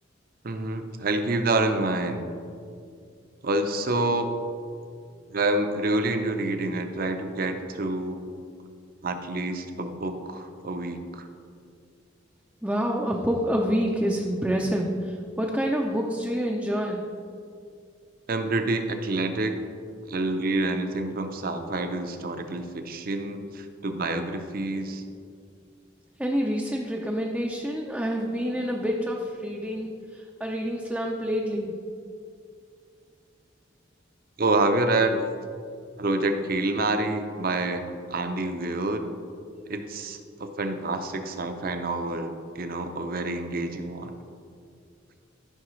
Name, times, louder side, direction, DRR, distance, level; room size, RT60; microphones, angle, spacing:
voice 1, 0.4-2.3 3.4-4.3 5.3-8.2 9.0-11.3 18.3-19.6 20.1-25.0 34.4-35.3 36.0-37.8 38.1-39.0 39.6-44.1, right 2 dB, 50° right, 7 dB, 0.6 m, -27 dB
voice 2, 12.6-17.0 26.2-31.7, equal, 5° right, -1 dB, 0.5 m, -27 dB
13.5 x 5.8 x 3.1 m, 2.3 s
head